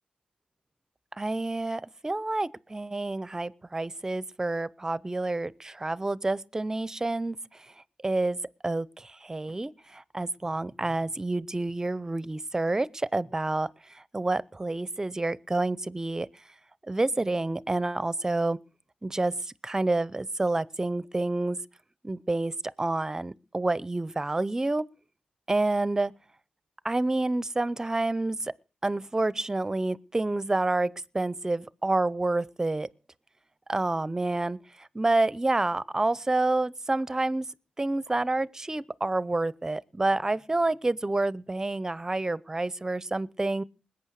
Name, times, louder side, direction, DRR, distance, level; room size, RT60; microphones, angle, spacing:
voice 1, 1.2-7.4 8.0-8.4 8.6-13.7 13.9-16.3 16.9-18.6 19.0-19.3 19.6-21.6 22.0-22.5 22.8-24.9 25.5-26.1 26.8-28.5 28.8-32.9 33.7-37.5 37.8-43.6, right 2 dB, 20° right, 0.7 m, -28 dB
20.5 x 8.7 x 6.5 m
cardioid pair, 70°, 3 cm